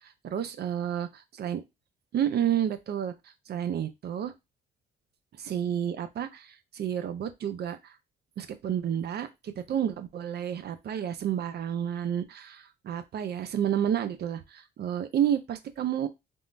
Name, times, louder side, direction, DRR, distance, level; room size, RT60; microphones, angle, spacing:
voice 1, 0.2-1.6 2.1-3.1 3.5-4.3 5.4-8.0 8.4-16.1, right 9 dB, 55° right, 10 dB, 0.5 m, -30 dB
3.6 x 2.1 x 2.5 m, 0.21 s
cardioid pair, 90°, 20 cm